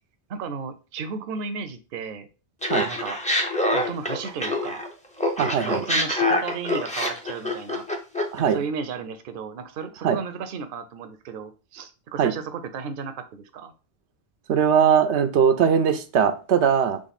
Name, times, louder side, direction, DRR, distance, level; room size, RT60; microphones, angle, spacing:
voice 1, 0.3-2.3 2.8-3.2 3.7-4.8 5.4-7.8 8.4-13.7, right 5 dB, 60° right, 9 dB, 0.7 m, -34 dB
Laughter, 2.6-4.9 5.2-8.4, left 1 dB, 10° left, 0.6 m, -25 dB
voice 2, 5.4-5.8 8.3-8.6 10.0-10.2 12.2-12.3 14.5-17.0, right 7 dB, 90° right, 8 dB, 0.9 m, -20 dB
3.8 x 3.2 x 4.0 m, 0.33 s
omnidirectional pair, 1.1 m